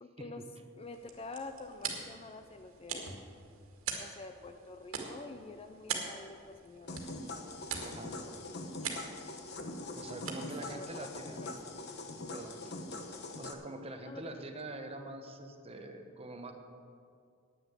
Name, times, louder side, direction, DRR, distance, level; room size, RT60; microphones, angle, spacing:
voice 1, 0.0-0.4 0.8-3.2 4.0-7.0 10.4-11.1 11.4-11.6 14.0-14.2, left 3 dB, 30° left, 8 dB, 0.5 m, -47 dB
sound 1, 0.8-12.0, right 6 dB, 75° right, 1.9 m, -44 dB
sound 2, 6.9-13.5, left 2 dB, 50° left, 1.0 m, -43 dB
voice 2, 7.8-8.2 9.9-11.4 12.3-12.8 13.4-16.5, right 2 dB, 30° right, 5 dB, 1.0 m, -45 dB
10.0 x 9.3 x 8.1 m, 2.3 s
head